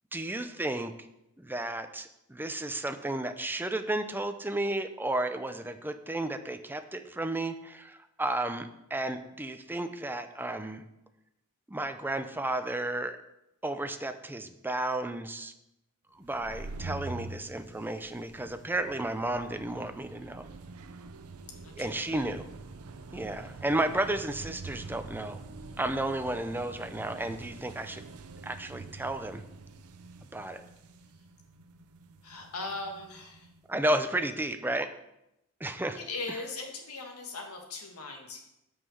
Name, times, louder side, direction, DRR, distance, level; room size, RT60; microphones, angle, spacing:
voice 1, 0.1-0.9 1.4-10.8 11.7-13.2 13.6-15.5 16.1-20.5 21.8-22.5 23.1-25.4 25.8-28.0 28.4-29.4 30.3-30.6 33.7-34.9 35.6-36.0, right 1 dB, 10° right, 8 dB, 0.6 m, -33 dB
sound 1, 16.2-33.6, right 3 dB, 80° right, 0.7 m, -46 dB
voice 2, 21.6-22.2 32.2-33.5 35.9-38.4, left 3 dB, 80° left, 2 dB, 1.9 m, -39 dB
8.2 x 5.7 x 6.4 m, 0.85 s
head